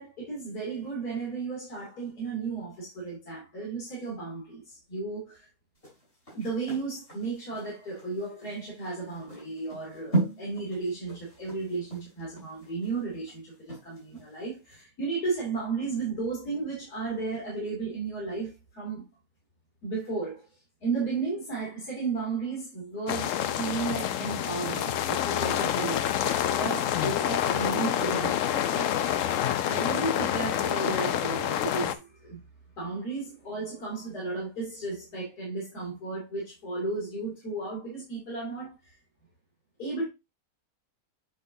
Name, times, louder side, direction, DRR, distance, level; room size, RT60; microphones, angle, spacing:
voice 1, 0.0-5.5 6.3-19.1 19.8-20.4 20.8-26.0 26.4-29.0 29.6-32.4 32.8-38.7 39.8-40.1, right 3 dB, 85° left, 3.3 m, -34 dB
sound 1, 5.8-14.3 14.7-14.8, right 2 dB, 45° left, 4.8 m, -36 dB
sound 2, 23.1-31.9, left 10 dB, 70° left, 0.9 m, -27 dB
8.6 x 5.4 x 2.7 m
omnidirectional pair, 1.6 m